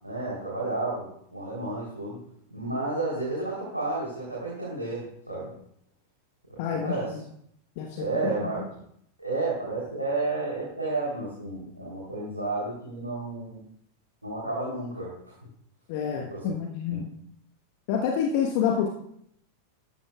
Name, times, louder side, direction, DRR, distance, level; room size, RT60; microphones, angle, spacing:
voice 1, 0.0-2.2 2.5-5.5 6.5-7.1 7.9-8.7 9.2-13.6 14.2-15.2 16.2-16.5 16.9-17.1, right 2 dB, 85° right, -7 dB, 3.5 m, -31 dB
voice 2, 6.6-7.1 7.8-8.6 15.9-17.1 17.9-18.9, left 7 dB, 45° left, 2 dB, 1.2 m, -28 dB
13.5 x 12.5 x 2.4 m, 0.70 s
figure-of-eight pair, 90°, 0 cm